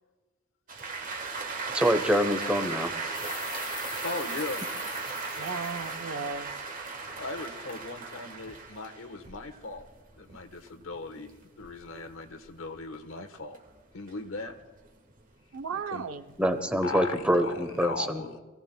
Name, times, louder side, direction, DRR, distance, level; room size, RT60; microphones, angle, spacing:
sound 1, 0.7-13.1 13.5-15.7 16.1-17.8, right 4 dB, 40° right, 1.2 m, -37 dB
sound 2, 1.6-1.7 2.7-6.1 6.5-6.6 7.1-7.4 7.7-7.8, left 7 dB, 40° left, 1.6 m, -44 dB
voice 1, 1.7-2.9 16.4-18.2, equal, 5° right, 8 dB, 0.9 m, -25 dB
voice 2, 4.0-4.7 7.2-9.9 10.2-13.6 13.9-14.5 15.7-16.1 16.8-18.4, left 3 dB, 70° left, 6 dB, 1.1 m, -38 dB
voice 3, 5.4-6.6 15.5-16.3, right 5 dB, 75° right, 9 dB, 0.7 m, -35 dB
27.5 x 16.5 x 2.2 m, 1.3 s
head